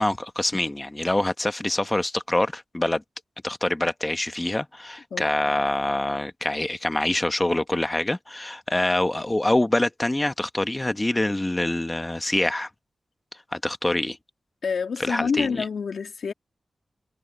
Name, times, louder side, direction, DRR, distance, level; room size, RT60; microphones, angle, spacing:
voice 1, 0.0-3.0 3.4-12.7 13.5-14.2 15.1-15.6, left 1 dB, 15° left, 1.1 m, -25 dB
voice 2, 5.1-5.5 14.6-16.3, left 5 dB, 85° left, 2.6 m, -28 dB
wide cardioid pair, 125°, 0 cm